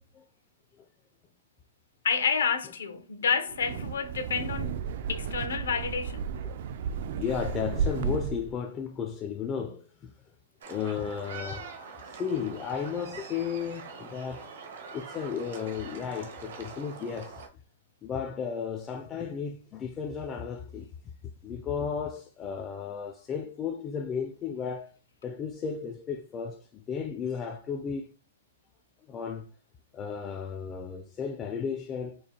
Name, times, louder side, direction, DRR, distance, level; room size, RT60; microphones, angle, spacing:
voice 1, 2.0-4.8 5.1-6.2, left 6 dB, 85° left, 0.7 m, -29 dB
Wind, 3.5-8.5, right 6 dB, 60° right, 0.3 m, -33 dB
voice 2, 7.2-10.1 10.7-11.7 12.2-14.5 14.9-17.4 18.0-20.9 21.4-24.9 25.2-28.1 29.1-29.5 29.9-32.2, left 7 dB, 20° left, 0.3 m, -34 dB
sound 1, 10.6-17.5, right 4 dB, 75° right, 0.9 m, -44 dB
4.4 x 2.2 x 2.8 m
hypercardioid pair, 140°, 0 cm